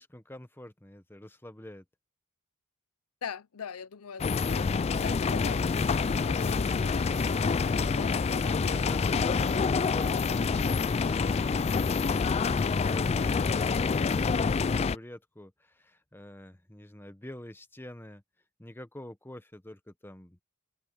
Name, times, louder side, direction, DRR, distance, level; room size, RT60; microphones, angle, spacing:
voice 1, 0.0-1.8 8.3-18.2 18.6-20.4, left 1 dB, 10° left, 1.0 m, -47 dB
voice 2, 3.2-8.8 9.1-9.6, left 6 dB, 80° left, 0.6 m, -43 dB
sound 1, 4.2-14.9, left 5 dB, 30° left, 0.3 m, -27 dB
sound 2, 5.8-13.1, right 5 dB, 75° right, 1.8 m, -53 dB
open air
head